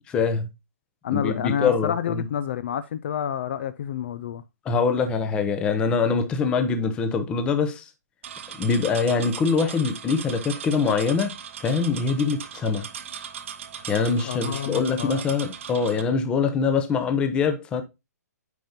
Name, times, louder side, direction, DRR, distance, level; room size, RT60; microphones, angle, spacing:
voice 1, 0.1-0.5 1.1-2.2 4.6-7.9 8.6-11.3 11.6-12.9 13.9-17.8, left 5 dB, 10° left, 0.7 m, -24 dB
voice 2, 1.0-4.4 13.8-13.9 14.2-15.2, left 9 dB, 40° left, 0.5 m, -29 dB
sound 1, 8.2-16.0, right 8 dB, 45° right, 0.9 m, -38 dB
9.3 x 5.2 x 2.7 m
hypercardioid pair, 165°, 9 cm